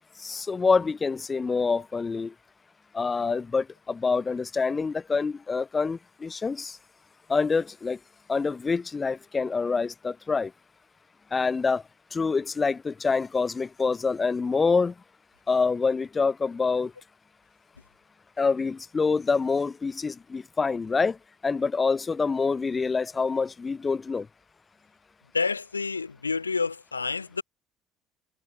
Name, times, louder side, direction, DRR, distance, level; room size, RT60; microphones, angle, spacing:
voice 1, 0.2-2.3 2.9-6.8 7.3-8.0 8.3-10.5 11.3-11.8 12.1-14.9 15.5-16.9 18.4-21.2 21.4-24.3, left 4 dB, 25° left, 0.4 m, -26 dB
voice 2, 25.3-27.4, left 4 dB, 85° left, 1.0 m, -29 dB
figure-of-eight pair, 55°, 0 cm